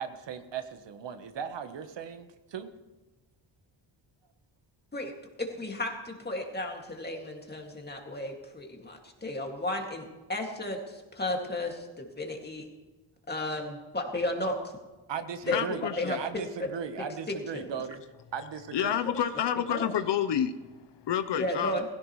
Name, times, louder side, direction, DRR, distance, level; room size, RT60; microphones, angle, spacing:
voice 1, 0.0-2.7 15.1-18.0 18.3-19.0, right 7 dB, 65° right, 9 dB, 1.2 m, -37 dB
voice 2, 5.4-12.7 13.3-14.6 15.5-15.6 16.0-16.2 16.6-16.7 17.0-17.7 19.7-19.9 21.4-21.9, left 1 dB, 20° left, 2 dB, 2.2 m, -34 dB
voice 3, 15.5-16.2 17.7-17.8 18.7-21.8, left 9 dB, 65° left, 11 dB, 0.8 m, -29 dB
16.5 x 16.0 x 3.1 m, 1.2 s
cardioid pair, 110°, 46 cm